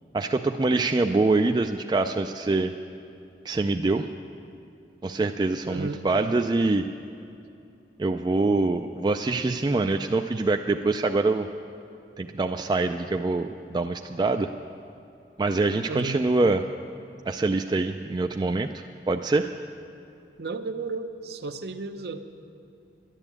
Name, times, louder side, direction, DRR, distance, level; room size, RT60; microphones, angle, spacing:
voice 1, 0.1-2.7 3.5-4.1 5.0-6.8 8.0-11.5 12.2-14.5 15.4-16.6 17.3-19.5, right 3 dB, 25° right, 6 dB, 0.3 m, -24 dB
voice 2, 5.6-6.0 15.9-16.2 20.4-22.2, right 3 dB, 60° right, 8 dB, 0.7 m, -33 dB
11.0 x 11.0 x 8.4 m, 2.7 s
head